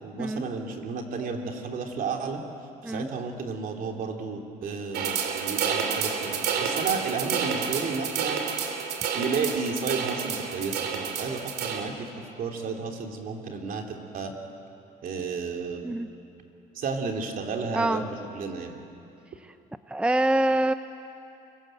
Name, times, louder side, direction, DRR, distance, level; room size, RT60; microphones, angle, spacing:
voice 1, 0.0-2.4 2.8-8.4 9.1-14.3 15.0-15.9 16.7-18.8, right 5 dB, 55° right, 2 dB, 3.3 m, -32 dB
sound 1, 4.9-11.8, right 6 dB, 75° right, 3.1 m, -29 dB
voice 2, 19.9-20.7, right 1 dB, 5° right, 11 dB, 0.6 m, -24 dB
25.5 x 25.0 x 8.0 m, 2.7 s
cardioid pair, 110°, 17 cm